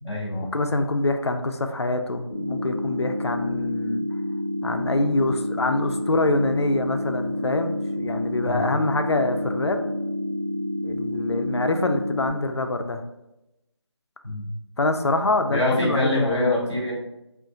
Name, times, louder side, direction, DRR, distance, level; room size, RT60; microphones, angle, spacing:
voice 1, 0.0-0.6 8.4-8.7 14.2-14.4 15.5-16.9, left 2 dB, 5° right, -13 dB, 0.7 m, -25 dB
voice 2, 0.5-4.1 4.6-9.8 10.8-13.0 14.8-16.5, left 2 dB, 65° left, 6 dB, 0.4 m, -25 dB
sound 1, 2.3-12.3, left 1 dB, 40° left, 0.7 m, -29 dB
3.8 x 2.5 x 3.6 m, 0.91 s
figure-of-eight pair, 170°, 15 cm